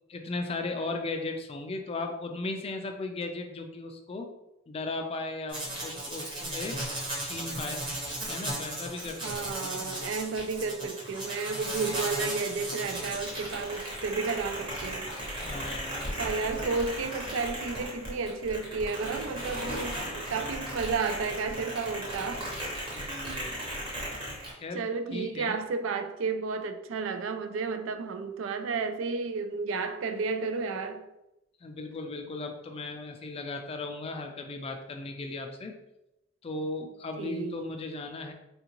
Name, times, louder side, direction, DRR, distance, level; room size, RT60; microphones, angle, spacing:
voice 1, 0.1-4.3 4.7-6.8 7.2-8.0 8.2-9.7 15.4-16.1 20.3-20.8 22.9-23.6 24.5-25.6 31.6-35.8 36.4-38.3, left 2 dB, 30° left, 0.3 m, -37 dB
sound 1, 5.5-24.5, right 1 dB, 25° right, 0.9 m, -36 dB
voice 2, 9.2-15.1 16.2-22.5 23.2-23.5 24.7-31.0 37.2-37.6, right 4 dB, 80° right, 0.3 m, -32 dB
3.5 x 2.4 x 2.9 m
head